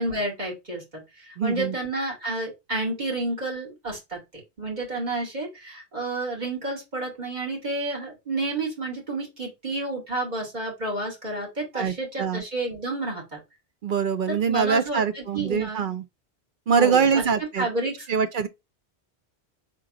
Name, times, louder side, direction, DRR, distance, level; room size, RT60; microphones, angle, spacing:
voice 1, 0.0-13.4 14.3-15.8 16.8-17.3 17.6-18.2, right 2 dB, 40° right, 2.2 m, -30 dB
voice 2, 1.4-1.7 11.7-12.4 13.8-16.0 16.7-17.7 18.1-18.5, right 6 dB, 60° right, 0.6 m, -23 dB
3.7 x 2.9 x 4.8 m
omnidirectional pair, 1.1 m